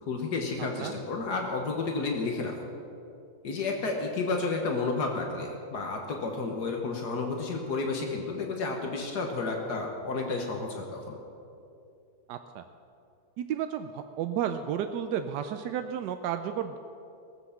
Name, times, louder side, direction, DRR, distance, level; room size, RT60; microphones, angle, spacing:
voice 1, 0.0-2.6 3.4-11.2, left 3 dB, 75° left, 2 dB, 1.8 m, -31 dB
voice 2, 12.3-12.6 13.4-16.8, right 9 dB, 90° right, 8 dB, 1.2 m, -32 dB
18.0 x 7.8 x 7.1 m, 2.6 s
omnidirectional pair, 1.8 m